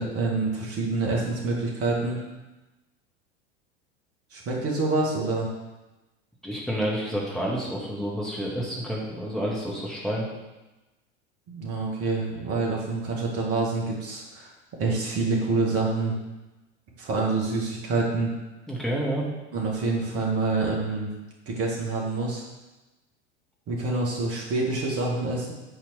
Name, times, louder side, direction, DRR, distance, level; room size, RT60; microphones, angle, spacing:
voice 1, 0.0-2.2 4.3-5.5 11.5-14.5 14.8-16.2 17.0-18.3 19.5-21.1 21.5-22.4 23.7-25.5, right 3 dB, 40° right, -2 dB, 2.5 m, -27 dB
voice 2, 6.4-10.3 18.7-19.3, equal, ahead, -5 dB, 2.2 m, -29 dB
9.2 x 4.4 x 6.6 m, 1.1 s
figure-of-eight pair, 80°, 36 cm